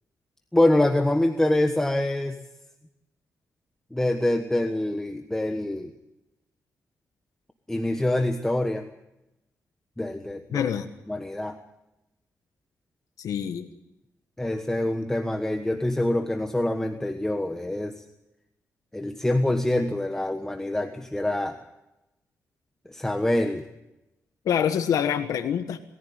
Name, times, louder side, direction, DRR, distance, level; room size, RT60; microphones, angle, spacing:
voice 1, 0.5-2.4 3.9-5.9 7.7-8.8 10.0-10.7 11.1-11.6 14.4-18.0 18.9-21.6 22.8-23.6, left 1 dB, 10° left, 6 dB, 1.3 m, -25 dB
voice 2, 10.5-10.9 13.2-13.7 24.4-25.8, left 8 dB, 85° left, 7 dB, 1.3 m, -25 dB
21.5 x 15.0 x 9.4 m, 0.93 s
cardioid pair, 120°, 6 cm